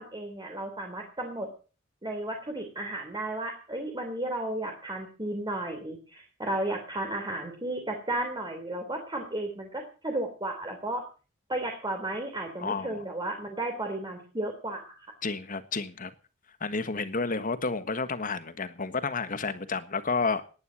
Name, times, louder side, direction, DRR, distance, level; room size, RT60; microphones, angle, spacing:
voice 1, 0.0-1.5 2.0-11.0 11.5-15.1, right 1 dB, 20° right, 3.4 m, -34 dB
voice 2, 12.6-13.0 15.2-16.1 16.6-20.5, left 4 dB, 45° left, 1.5 m, -31 dB
18.5 x 11.0 x 6.5 m
head